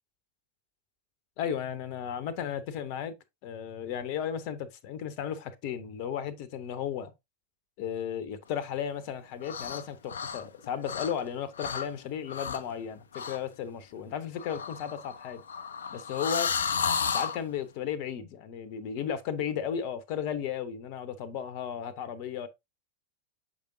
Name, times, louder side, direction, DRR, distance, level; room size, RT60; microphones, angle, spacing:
voice 1, 1.4-3.2 3.4-7.1 7.8-15.4 15.9-16.5 17.1-22.5, left 8 dB, 45° left, 0.9 m, -34 dB
sound 1, 9.4-9.8 10.1-11.3 11.6-11.9 12.3-12.7 13.1-13.4 14.4-17.4, left 6 dB, 65° left, 0.6 m, -32 dB
6.9 x 5.3 x 2.7 m
figure-of-eight pair, 90°, 0 cm